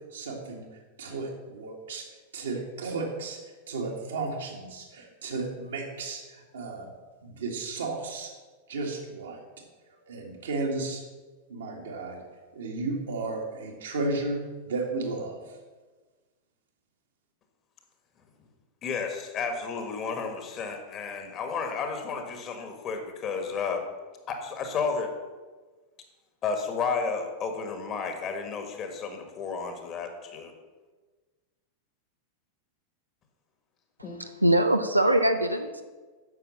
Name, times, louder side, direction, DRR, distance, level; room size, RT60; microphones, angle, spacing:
voice 1, 0.1-0.6 1.0-2.0 2.3-3.4 3.7-6.9 7.2-8.3 8.7-9.4 10.0-11.0 11.5-15.4, right 3 dB, 65° right, 0 dB, 2.0 m, -33 dB
voice 2, 18.8-23.8 24.3-25.1 26.4-30.5 34.0-34.2, left 5 dB, 30° left, 5 dB, 1.6 m, -32 dB
voice 3, 34.2-35.8, right 1 dB, 85° right, 7 dB, 0.6 m, -23 dB
9.7 x 6.7 x 6.3 m, 1.3 s
figure-of-eight pair, 90°, 0 cm